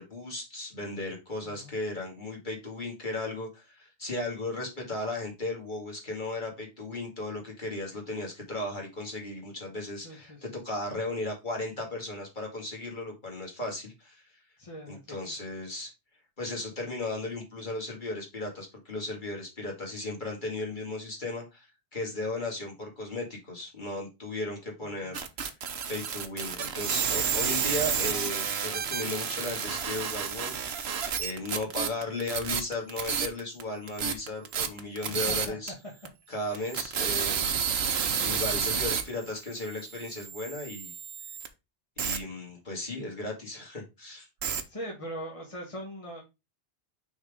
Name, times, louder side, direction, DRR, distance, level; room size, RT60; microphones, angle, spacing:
voice 1, 0.0-14.4 14.9-15.9 16.4-25.2 25.9-30.6 31.2-35.7 36.3-37.6 38.2-40.9 42.0-44.3, left 2 dB, 45° left, 0 dB, 2.4 m, -36 dB
voice 2, 1.4-1.7 10.0-10.4 14.6-15.0 35.0-35.6 36.5-36.7 44.7-46.2, equal, 30° left, -2 dB, 1.6 m, -41 dB
sound 1, 25.1-33.6 33.9-35.7 36.1-36.2 36.5-41.5 42.0-42.2 44.4-44.6, right 7 dB, 65° right, 1.1 m, -30 dB
6.3 x 3.7 x 4.9 m, 0.25 s
omnidirectional pair, 1.1 m